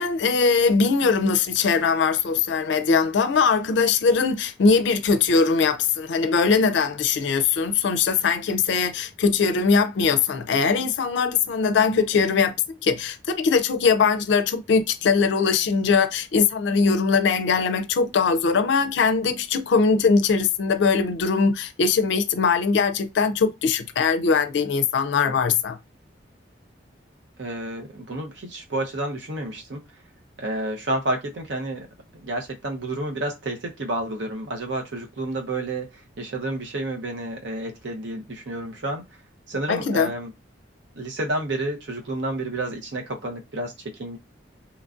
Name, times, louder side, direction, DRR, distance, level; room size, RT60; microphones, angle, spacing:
voice 1, 0.0-12.5 12.8-25.8 39.7-40.1, left 5 dB, 70° left, 0.4 m, -21 dB
voice 2, 27.4-29.8 30.4-31.9 32.2-35.9 36.2-39.0 39.5-40.3 40.9-43.7 44.0-44.2, right 1 dB, 75° right, 0.7 m, -30 dB
3.0 x 2.3 x 2.5 m
head